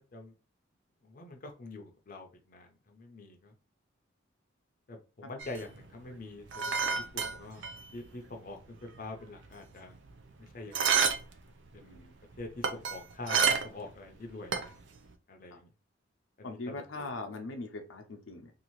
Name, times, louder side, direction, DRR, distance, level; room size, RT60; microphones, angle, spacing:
voice 1, 1.0-3.5 4.9-6.5 6.9-7.7 7.9-10.0 10.4-11.1 11.7-12.0 12.4-14.7 15.3-15.7 16.4-17.1, left 2 dB, 45° left, 3 dB, 0.5 m, -45 dB
sound 1, 5.4-8.1 8.3-8.4 8.7-10.3 10.7-11.4 11.7-13.9 14.2-15.0, right 6 dB, 65° right, 0.4 m, -30 dB
voice 2, 11.8-12.1 15.5-15.6 16.4-18.5, left 3 dB, 90° left, 5 dB, 0.6 m, -41 dB
2.7 x 2.4 x 2.9 m, 0.32 s
head